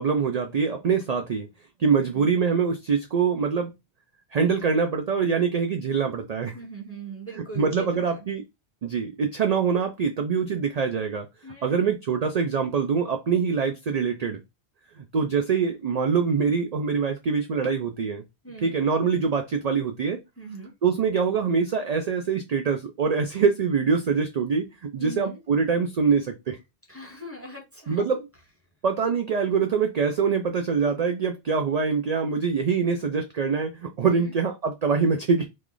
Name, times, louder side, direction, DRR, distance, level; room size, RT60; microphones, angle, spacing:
voice 1, 0.0-1.5 1.8-3.7 4.3-6.6 7.3-8.4 8.8-11.3 11.6-14.4 15.0-18.2 18.6-20.2 20.8-26.6 27.9-28.2 28.8-35.5, right 5 dB, 65° right, 5 dB, 0.4 m, -24 dB
voice 2, 2.0-2.3 6.5-8.3 11.4-11.9 18.4-18.7 20.4-20.7 25.0-25.4 26.9-28.1 34.0-34.3, right 2 dB, 15° left, 1 dB, 0.6 m, -40 dB
3.1 x 2.4 x 3.8 m, 0.23 s
omnidirectional pair, 1.2 m